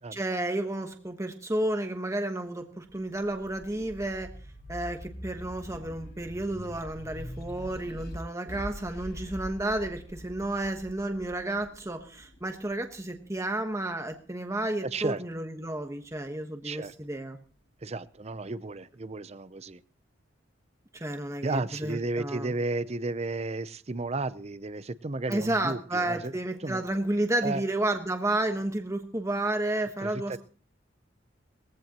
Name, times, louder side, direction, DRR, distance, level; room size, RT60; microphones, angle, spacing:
voice 1, 0.1-4.3 4.7-17.4 20.9-22.5 25.3-30.4, right 1 dB, 15° right, 5 dB, 1.2 m, -31 dB
sound 1, 2.9-13.7 14.2-15.4, equal, 60° left, 7.3 m, -44 dB
voice 2, 14.9-15.2 16.6-16.9 17.8-19.8 21.4-26.3 26.6-26.8 27.4-27.6 30.0-30.4, right 3 dB, 35° right, 15 dB, 0.6 m, -33 dB
20.0 x 15.5 x 3.0 m, 0.40 s
head